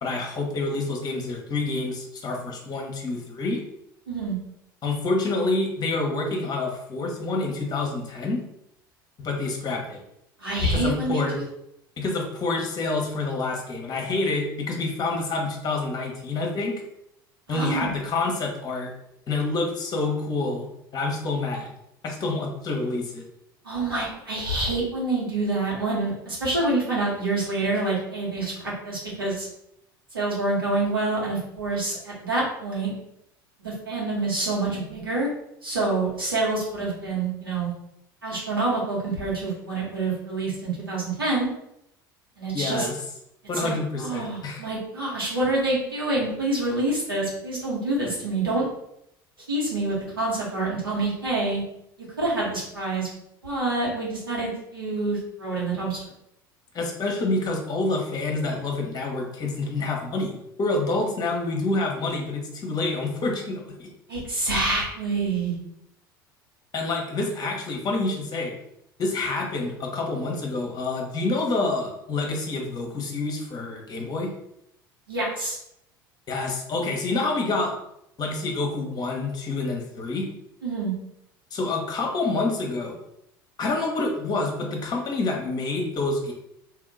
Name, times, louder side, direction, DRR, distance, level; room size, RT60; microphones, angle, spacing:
voice 1, 0.0-3.6 4.8-8.4 9.2-10.0 10.6-11.4 12.0-16.8 17.5-18.9 19.3-20.7 20.9-21.7 22.0-23.2 42.5-43.0 43.5-44.6 56.7-63.9 66.7-68.5 69.0-74.3 76.3-77.7 78.2-80.3 81.5-83.0 83.6-86.3, left 3 dB, 35° left, 1 dB, 1.1 m, -27 dB
voice 2, 4.1-4.4 10.4-11.4 17.5-17.9 23.6-29.5 30.1-32.9 33.6-35.3 35.6-37.7 38.2-41.5 42.4-42.9 43.5-43.7 44.0-48.7 49.5-51.6 52.2-53.1 53.4-56.0 64.1-65.6 75.1-75.6 80.6-80.9, right 2 dB, 90° right, -5 dB, 1.5 m, -27 dB
2.9 x 2.8 x 3.9 m, 0.78 s
figure-of-eight pair, 70°, 12 cm